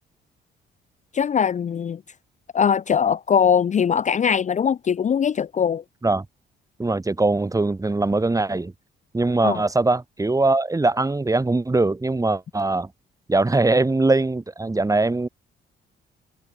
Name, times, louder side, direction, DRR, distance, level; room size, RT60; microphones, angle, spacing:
voice 1, 1.1-2.0 2.5-5.8 9.4-9.6, left 7 dB, 40° left, 0.6 m, -21 dB
voice 2, 6.8-8.7 9.1-12.9 13.3-15.3, right 2 dB, 15° right, 2.1 m, -21 dB
cardioid pair, 90°, 20 cm